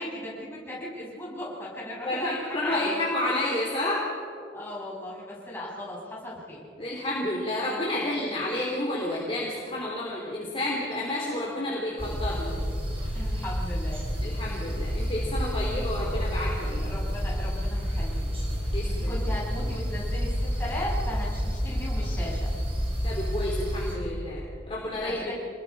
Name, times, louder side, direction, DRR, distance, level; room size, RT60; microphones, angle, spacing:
voice 1, 0.0-2.9 4.5-6.6 13.1-14.4 16.8-18.4 18.8-22.5 25.2-25.3, left 1 dB, 10° left, -6 dB, 7.0 m, -37 dB
voice 2, 2.0-4.1 6.8-12.6 14.2-16.8 18.7-19.2 23.0-25.3, left 1 dB, 30° left, -4 dB, 3.5 m, -30 dB
sound 1, 12.0-24.0, equal, 30° right, 4.6 m, -29 dB
28.0 x 21.0 x 4.9 m, 2.3 s
head